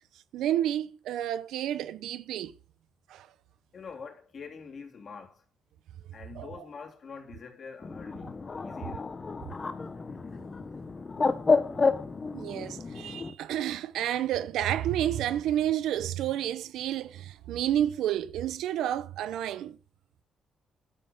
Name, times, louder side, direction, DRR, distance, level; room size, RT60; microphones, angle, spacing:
voice 1, 0.3-2.5 3.1-3.3 6.4-6.5 12.3-19.8, right 11 dB, 85° right, 0.8 m, -30 dB
voice 2, 3.7-5.4 6.1-9.1, left 5 dB, 50° left, 3.6 m, -45 dB
Bird, 7.8-13.3, left 4 dB, 30° left, 1.3 m, -30 dB
11.5 x 7.9 x 5.6 m
cardioid pair, 90°, 0 cm